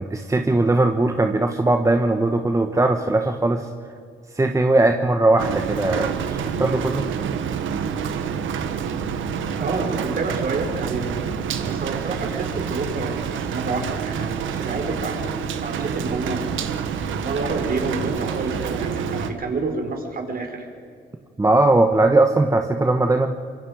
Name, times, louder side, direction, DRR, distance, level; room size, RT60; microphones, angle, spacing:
voice 1, 0.0-3.7 4.3-7.1 21.4-23.3, right 2 dB, 15° right, 5 dB, 1.3 m, -19 dB
Rain, 5.4-19.3, right 7 dB, 80° right, 1.6 m, -27 dB
voice 2, 9.6-11.2 11.6-16.5 17.2-20.6, right 3 dB, 50° right, 4 dB, 4.6 m, -28 dB
25.5 x 23.5 x 5.1 m, 2.2 s
cardioid pair, 90°, 20 cm